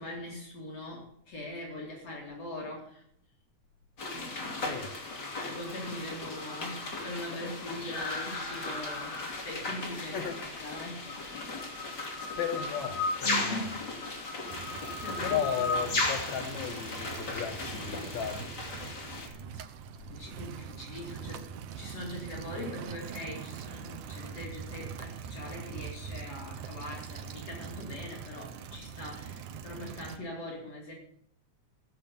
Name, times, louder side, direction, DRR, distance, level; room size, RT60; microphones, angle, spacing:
voice 1, 0.0-3.0 4.1-4.8 5.4-10.4 10.6-11.1 13.2-13.9 14.4-15.4 15.9-16.0 19.7-19.8 20.1-30.9, left 1 dB, 55° left, 3.8 m, -41 dB
sound 1, 4.0-19.3, left 2 dB, 35° left, 2.9 m, -36 dB
voice 2, 4.6-4.9 10.0-10.4 12.4-13.7 15.2-18.8, left 8 dB, 70° left, 2.4 m, -35 dB
sound 2, 14.5-30.2, right 7 dB, 85° right, 2.5 m, -43 dB
16.5 x 7.7 x 7.0 m
omnidirectional pair, 3.5 m